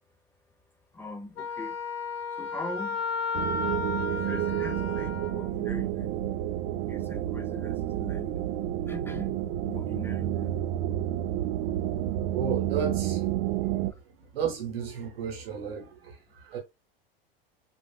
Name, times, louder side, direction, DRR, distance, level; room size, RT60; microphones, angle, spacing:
voice 1, 0.9-1.8 2.4-3.0 4.1-6.2 6.9-8.3 8.9-9.3 9.7-10.5, left 2 dB, 10° left, 0.3 m, -41 dB
Wind instrument woodwind instrument, 1.4-5.5, left 5 dB, 90° left, 0.6 m, -33 dB
sound 1, 3.3-13.9, right 13 dB, 50° right, 0.5 m, -30 dB
voice 2, 12.3-13.3 14.3-16.6, right 7 dB, 80° right, 1.1 m, -33 dB
3.8 x 2.4 x 2.3 m
hypercardioid pair, 90°, 29 cm